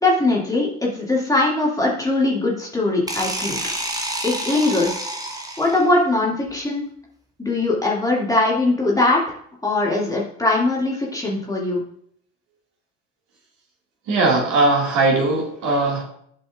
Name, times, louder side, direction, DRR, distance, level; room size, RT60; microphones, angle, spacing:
voice 1, 0.0-3.6 4.2-5.1 5.6-6.9 7.4-9.2 9.6-11.8, left 2 dB, 10° left, -3 dB, 2.1 m, -21 dB
sound 1, 3.1-6.0, right 1 dB, 10° right, 0.8 m, -28 dB
voice 2, 14.1-16.0, right 2 dB, 45° right, -1 dB, 2.0 m, -19 dB
11.5 x 5.1 x 2.4 m, 0.66 s
figure-of-eight pair, 65°, 42 cm